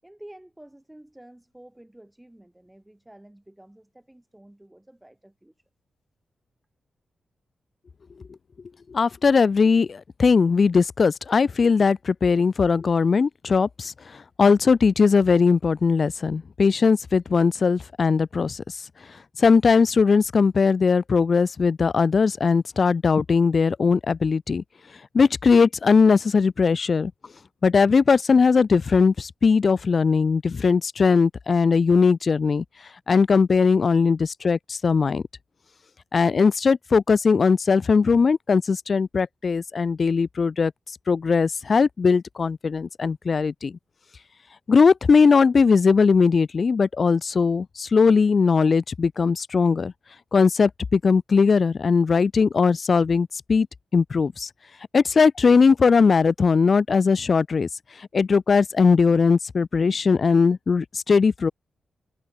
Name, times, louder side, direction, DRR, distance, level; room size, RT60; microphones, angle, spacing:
voice 1, 0.0-5.5, right 1 dB, 10° right, 6.4 m, -49 dB
voice 2, 8.9-18.8 19.4-24.6 25.1-27.1 27.6-32.6 33.1-35.2 36.1-40.7 41.1-43.8 44.7-49.9 50.3-53.7 53.9-54.5 54.9-57.7 58.0-61.5, left 5 dB, 55° left, 0.3 m, -19 dB
supercardioid pair, 45°, 0 cm